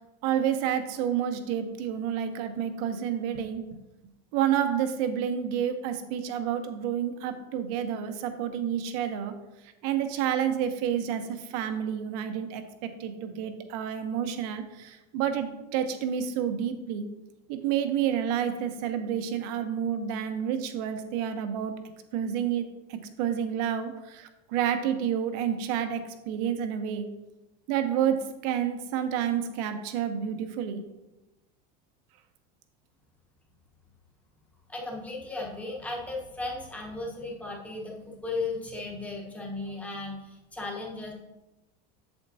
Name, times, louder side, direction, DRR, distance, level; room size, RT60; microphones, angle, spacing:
voice 1, 0.2-3.8 4.3-9.3 9.8-17.1 17.5-21.7 22.1-27.1 27.7-30.8, right 9 dB, 65° right, 8 dB, 0.9 m, -29 dB
voice 2, 34.7-41.1, left 3 dB, 5° left, -2 dB, 1.1 m, -36 dB
8.0 x 7.8 x 2.7 m, 1.0 s
cardioid pair, 160°, 21 cm